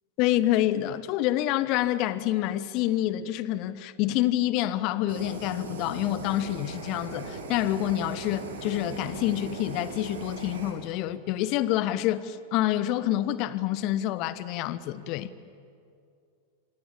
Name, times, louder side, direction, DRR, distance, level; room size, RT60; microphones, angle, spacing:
voice 1, 0.2-15.3, left 13 dB, 40° left, 1.2 m, -27 dB
Fire, 5.1-10.7, right 3 dB, 65° right, 4.5 m, -39 dB
27.0 x 26.0 x 8.5 m
figure-of-eight pair, 90°, 0 cm